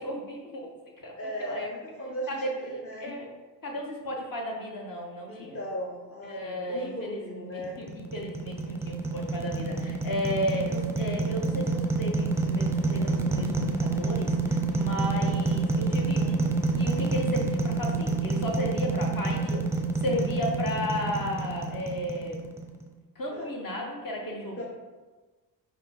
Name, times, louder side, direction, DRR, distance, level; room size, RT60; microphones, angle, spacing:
voice 1, 0.0-1.1 1.4-1.7 2.3-3.3 3.6-5.6 6.2-16.4 16.7-19.6 20.0-22.4 23.1-24.6, equal, 45° left, 0 dB, 1.2 m, -34 dB
voice 2, 1.2-2.4 2.7-3.2 5.3-7.7 16.8-17.1 23.3-23.5 24.6-24.7, equal, 30° left, -3 dB, 0.9 m, -37 dB
sound 1, 7.6-22.8, right 3 dB, 5° right, 0.6 m, -28 dB
5.2 x 2.4 x 4.1 m, 1.3 s
supercardioid pair, 55°, 46 cm